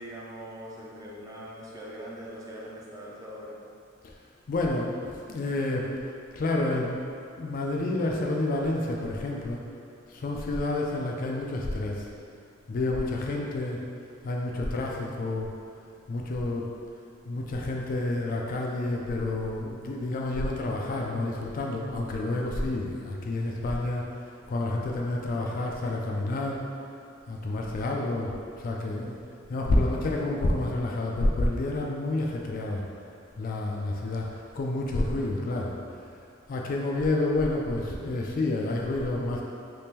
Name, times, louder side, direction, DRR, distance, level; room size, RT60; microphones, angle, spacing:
voice 1, 0.0-3.6, equal, 15° right, -5 dB, 0.5 m, -41 dB
voice 2, 4.5-5.9 6.3-7.0 7.4-9.6 10.1-12.1 12.7-13.8 14.2-15.5 16.1-16.7 17.3-26.6 27.3-28.3 28.6-29.2 29.5-32.8 33.4-35.7 36.5-39.4, left 2 dB, 45° left, -1 dB, 0.3 m, -29 dB
3.5 x 2.9 x 2.8 m, 2.5 s
head